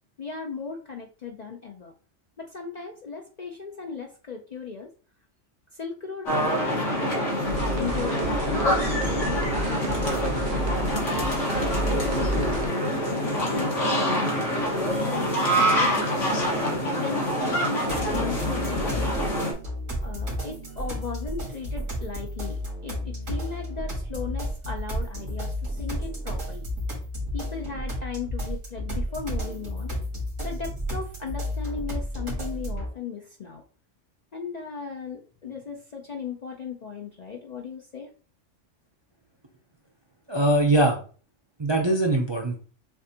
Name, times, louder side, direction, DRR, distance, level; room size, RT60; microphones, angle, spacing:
voice 1, 0.2-1.9 2.4-4.9 5.7-7.5 7.8-10.1 11.2-12.6 13.2-16.3 17.0-19.1 20.0-26.7 27.3-29.9 30.4-33.6 34.3-38.1, left 5 dB, 50° left, 2 dB, 0.5 m, -37 dB
sound 1, 6.3-19.5, equal, 75° left, 1.8 m, -26 dB
sound 2, 7.5-12.7, right 2 dB, 70° right, 1.0 m, -31 dB
sound 3, 17.9-32.9, equal, 90° right, 2.2 m, -32 dB
voice 2, 40.3-41.0 41.6-42.6, right 1 dB, 30° right, 1 dB, 0.5 m, -22 dB
6.8 x 2.5 x 2.8 m, 0.39 s
omnidirectional pair, 1.3 m